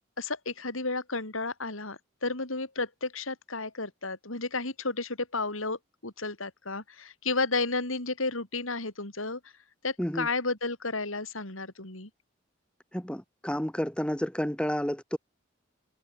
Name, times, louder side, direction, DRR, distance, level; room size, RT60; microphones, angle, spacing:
voice 1, 0.2-9.4 9.8-12.1, left 3 dB, 90° left, 5.0 m, -32 dB
voice 2, 12.9-15.2, equal, 5° left, 0.9 m, -30 dB
head